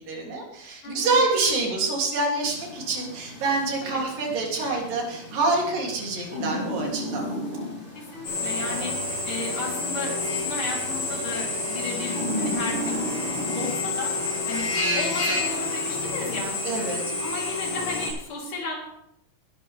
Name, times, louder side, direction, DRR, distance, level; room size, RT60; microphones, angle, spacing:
voice 1, 0.0-7.3 16.6-17.0, right 3 dB, 80° right, -1 dB, 4.7 m, -26 dB
voice 2, 0.8-1.2 7.9-8.9 9.3-13.0 13.5-14.1 14.5-16.6 17.2-18.8, left 3 dB, 65° left, -2 dB, 5.0 m, -34 dB
sound 1, 2.4-16.4, equal, 40° left, 5.7 m, -37 dB
Drill, 8.2-18.1, left 2 dB, 85° left, 7.9 m, -29 dB
19.5 x 11.5 x 3.5 m, 0.79 s
omnidirectional pair, 3.9 m